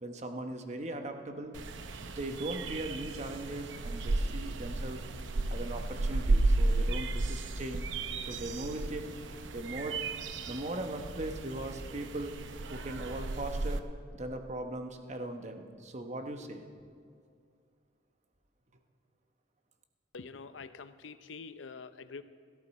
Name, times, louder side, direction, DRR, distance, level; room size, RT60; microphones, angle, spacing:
voice 1, 0.0-1.6 2.0-5.0 5.5-7.9 8.3-9.1 9.5-12.3 12.7-13.8 14.1-16.6, right 1 dB, 40° right, 6 dB, 1.0 m, -39 dB
sound 1, 1.5-13.8, right 2 dB, 85° right, 0.7 m, -33 dB
voice 2, 20.1-22.2, left 4 dB, 90° left, 12 dB, 0.6 m, -46 dB
17.0 x 13.0 x 4.2 m, 2.2 s
head